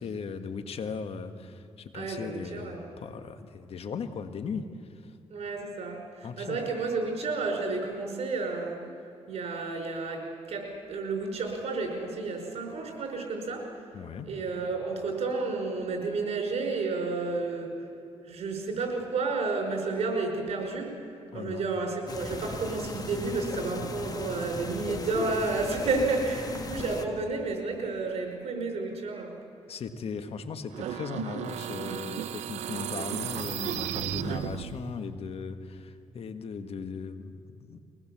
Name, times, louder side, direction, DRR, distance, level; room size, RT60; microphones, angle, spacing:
voice 1, 0.0-4.7 5.0-5.1 6.2-6.6 13.9-14.3 21.3-21.6 29.7-37.8, left 5 dB, 65° left, 8 dB, 1.6 m, -38 dB
voice 2, 1.9-2.9 5.3-8.8 9.3-13.6 14.2-17.7 18.2-20.9 21.3-29.3, right 3 dB, 70° right, 2 dB, 5.6 m, -31 dB
sound 1, 22.1-27.1, left 3 dB, 35° left, 1.6 m, -37 dB
sound 2, 30.7-35.0, right 10 dB, 85° right, 0.8 m, -34 dB
23.5 x 19.0 x 7.5 m, 2.6 s
cardioid pair, 80°, 11 cm